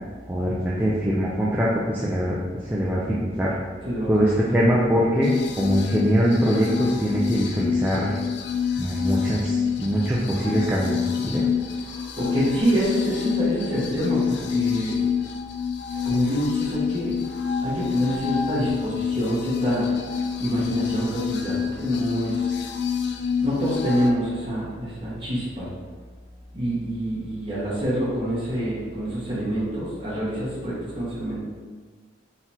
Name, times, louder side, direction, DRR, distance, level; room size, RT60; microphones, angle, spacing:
voice 1, 0.3-2.4 2.6-3.5 4.1-5.3 5.6-8.1 8.8-11.4, equal, 10° right, -6 dB, 0.4 m, -23 dB
voice 2, 3.8-4.6 11.8-15.0 16.0-17.2 17.6-19.9 20.3-22.7 23.4-25.7 26.5-31.4, equal, 25° right, -9 dB, 1.4 m, -26 dB
sound 1, 5.2-24.1, left 6 dB, 65° left, 0.4 m, -27 dB
4.4 x 4.0 x 2.8 m, 1.5 s
head